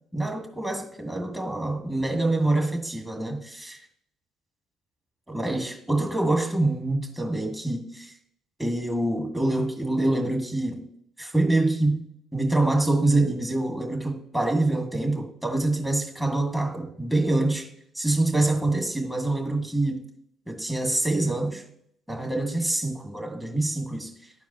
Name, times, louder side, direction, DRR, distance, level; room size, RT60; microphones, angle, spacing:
voice 1, 0.1-3.8 5.3-8.1 8.6-10.8 11.2-12.0 12.3-17.7 18.0-20.1 20.5-21.6 22.1-24.1, right 2 dB, 10° right, 2.0 m, -25 dB
12.5 x 4.7 x 2.9 m
hypercardioid pair, 50°, 0 cm